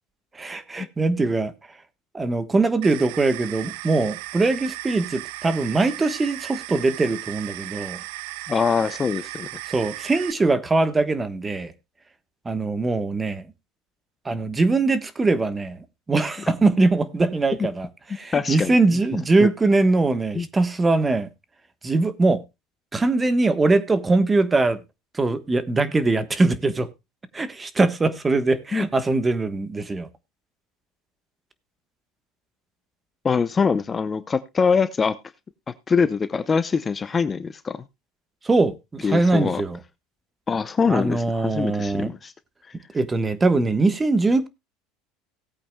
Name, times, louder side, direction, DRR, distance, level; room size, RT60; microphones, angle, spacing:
voice 1, 0.3-1.5 2.1-8.0 9.7-11.7 12.4-13.4 14.2-21.3 21.8-22.4 22.9-24.8 25.1-26.9 27.3-30.1 38.4-39.8 40.9-42.1 42.9-44.5, right 3 dB, 15° right, 1.2 m, -22 dB
sound 1, 2.8-10.3, right 18 dB, 75° right, 0.5 m, -36 dB
voice 2, 8.5-9.5 18.3-18.7 19.4-19.5 20.3-20.5 28.7-28.8 33.2-35.2 35.7-37.8 39.0-39.6 40.5-42.3, left 5 dB, 25° left, 0.7 m, -23 dB
18.5 x 8.5 x 2.2 m
supercardioid pair, 120°, 0 cm